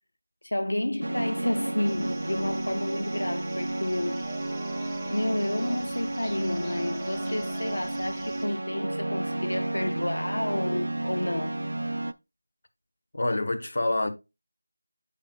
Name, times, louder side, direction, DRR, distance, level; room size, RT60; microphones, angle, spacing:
voice 1, 0.4-4.3 5.1-11.6, left 1 dB, 90° left, 0.4 m, -30 dB
sound 1, 1.0-12.1, right 1 dB, 75° right, 0.4 m, -32 dB
sound 2, 1.9-8.5, right 5 dB, 5° right, 0.3 m, -48 dB
Bird vocalization bird call bird song, 3.5-9.9, equal, 15° left, 1.6 m, -51 dB
voice 2, 13.1-14.1, left 2 dB, 55° left, 1.1 m, -26 dB
8.9 x 5.8 x 2.3 m
figure-of-eight pair, 175°, 0 cm